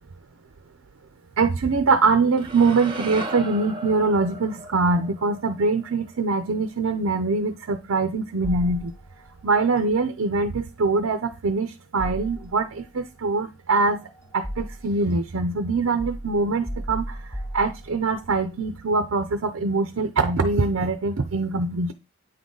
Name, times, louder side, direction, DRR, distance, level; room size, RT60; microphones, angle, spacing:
voice 1, 1.4-8.9 9.4-14.0 14.3-21.9, right 3 dB, 70° right, 7 dB, 0.5 m, -23 dB
sound 1, 2.4-6.6, right 2 dB, 20° right, 0.9 m, -37 dB
sound 2, 8.4-9.3 12.0-12.9 13.8-15.1 16.0-18.2, equal, 15° left, 0.9 m, -35 dB
8.9 x 3.7 x 3.9 m, 0.27 s
head